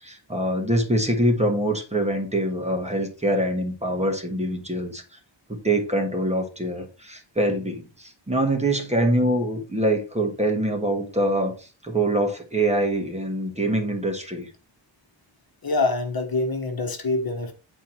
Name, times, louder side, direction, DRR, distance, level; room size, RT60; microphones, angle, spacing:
voice 1, 0.0-5.0 5.6-14.5, right 1 dB, 15° right, 1.4 m, -24 dB
voice 2, 15.6-17.5, left 3 dB, 50° left, 1.4 m, -25 dB
9.3 x 4.6 x 4.3 m
wide cardioid pair, 175°, 47 cm